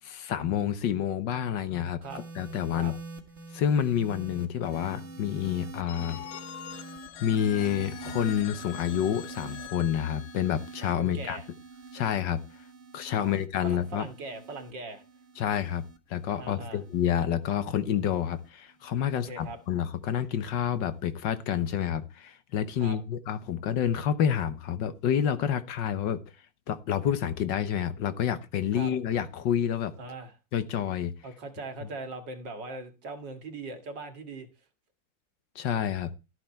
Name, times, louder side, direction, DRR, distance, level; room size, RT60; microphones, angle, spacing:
voice 1, 0.0-2.0 2.3-2.9 3.5-6.3 7.2-11.4 11.9-12.4 12.9-14.1 15.4-15.8 16.1-26.2 26.7-29.9 30.5-31.1 35.5-36.1, left 9 dB, 70° left, 1.6 m, -28 dB
sound 1, 2.0-18.5 19.4-19.7, right 3 dB, 40° right, 1.8 m, -46 dB
Telephone, 5.9-11.6, left 11 dB, 90° left, 1.7 m, -44 dB
voice 2, 11.0-11.5 13.2-15.0 16.4-16.8 19.1-19.6 22.8-23.0 28.7-28.9 30.0-30.3 31.2-34.5, right 3 dB, 65° right, 2.5 m, -40 dB
13.5 x 9.2 x 4.4 m
omnidirectional pair, 2.1 m